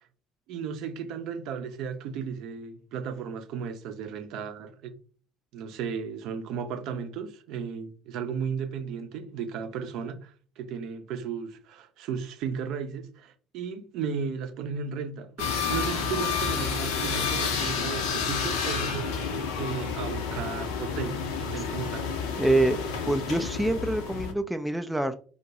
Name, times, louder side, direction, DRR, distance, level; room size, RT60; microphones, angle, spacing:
voice 1, 0.5-4.9 5.5-22.4, right 6 dB, 55° right, 0.5 m, -35 dB
sound 1, 15.4-24.3, left 5 dB, 65° left, 0.5 m, -30 dB
voice 2, 22.4-22.8 23.1-25.1, right 2 dB, 5° right, 0.3 m, -25 dB
2.6 x 2.2 x 3.9 m
figure-of-eight pair, 60°, 0 cm